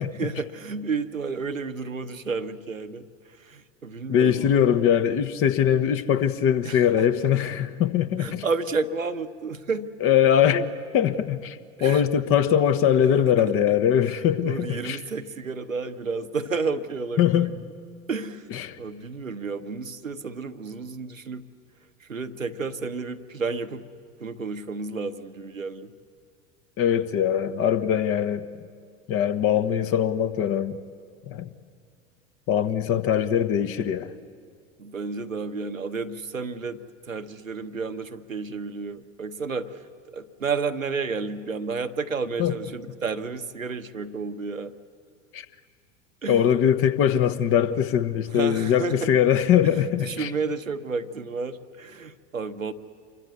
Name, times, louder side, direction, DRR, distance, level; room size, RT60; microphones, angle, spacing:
voice 1, 0.0-3.0 3.4-4.8 6.6-7.1 8.2-9.9 11.8-12.0 13.4-13.5 14.4-17.7 18.1-18.5 18.8-21.5 22.0-23.9 24.2-25.9 34.8-39.8 40.1-44.7 46.2-46.5 48.3-49.1 49.6-49.7 50.0-52.7, right 4 dB, 85° right, 8 dB, 1.1 m, -31 dB
voice 2, 4.1-8.4 10.0-15.0 17.2-17.5 18.5-18.8 26.8-28.5 29.1-30.8 31.3-31.5 32.5-34.1 42.4-42.5 45.3-45.4 46.3-50.3, left 9 dB, 35° left, 12 dB, 1.2 m, -22 dB
27.0 x 23.0 x 8.5 m, 2.2 s
figure-of-eight pair, 85°, 39 cm